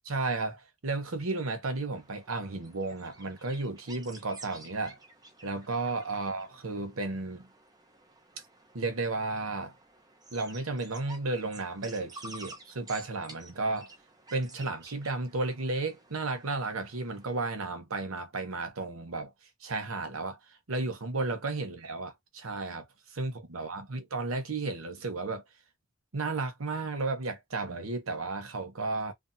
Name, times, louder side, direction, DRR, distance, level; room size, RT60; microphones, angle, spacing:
voice 1, 0.1-5.0 5.4-7.5 8.7-9.7 10.3-13.9 14.3-19.3 19.6-20.4 20.7-25.4 26.1-29.1, right 3 dB, 85° right, 1.0 m, -33 dB
sound 1, 1.9-17.5, right 2 dB, 20° right, 0.8 m, -52 dB
3.4 x 2.1 x 2.7 m
head